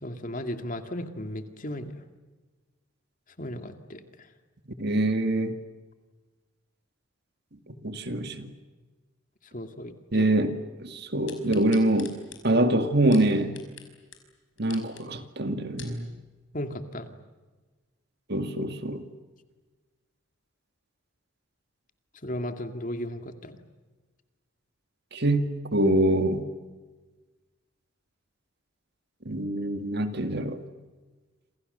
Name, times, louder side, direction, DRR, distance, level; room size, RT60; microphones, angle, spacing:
voice 1, 0.0-2.0 3.4-4.0 9.5-10.3 16.5-17.1 22.2-23.6, left 1 dB, 40° left, 2.3 m, -35 dB
voice 2, 4.8-5.5 7.8-8.5 10.1-12.2 12.4-13.6 14.6-16.1 18.3-19.0 25.1-26.4 29.3-30.6, right 1 dB, 50° right, 2.1 m, -25 dB
sound 1, 11.3-13.9 14.1-14.2 14.6-15.0 15.5-16.0 16.6-16.7, left 10 dB, 65° left, 5.2 m, -45 dB
28.5 x 28.0 x 6.8 m
head